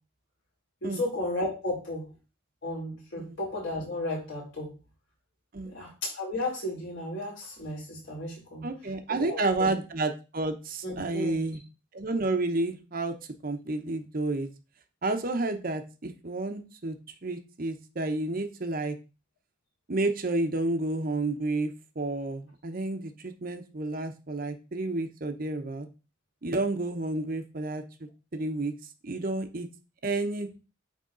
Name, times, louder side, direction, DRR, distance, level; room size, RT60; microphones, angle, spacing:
voice 1, 0.8-2.1 2.6-4.7 5.6-8.7 9.1-9.7 10.8-11.4, left 1 dB, 65° left, -5 dB, 4.4 m, -34 dB
voice 2, 5.5-5.8 8.6-11.6 11.9-13.1 13.4-14.5 15.0-17.0 17.2-19.0 19.9-21.7 22.0-25.9 26.4-27.8 28.3-28.7 29.0-29.7 30.0-30.5, right 2 dB, 45° right, 7 dB, 0.8 m, -30 dB
9.3 x 3.6 x 3.8 m, 0.32 s
head